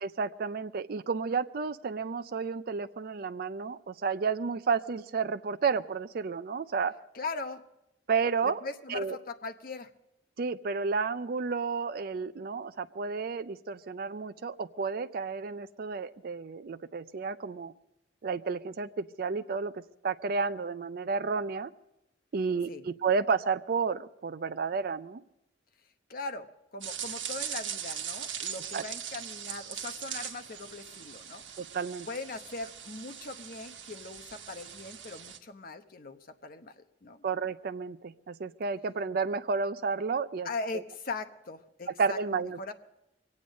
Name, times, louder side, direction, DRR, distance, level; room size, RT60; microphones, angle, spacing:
voice 1, 0.0-6.9 8.1-8.6 8.9-9.2 10.4-17.7 18.2-21.7 22.3-25.2 28.7-28.8 31.6-32.1 37.2-40.5 42.0-42.7, right 5 dB, 55° right, 10 dB, 0.4 m, -31 dB
voice 2, 7.1-7.6 8.4-9.9 22.7-22.8 26.1-31.4 32.1-37.2 40.4-42.7, left 3 dB, 50° left, 7 dB, 0.9 m, -40 dB
sound 1, 26.8-35.4, right 9 dB, 85° right, 1.2 m, -40 dB
23.5 x 8.6 x 6.3 m, 0.88 s
head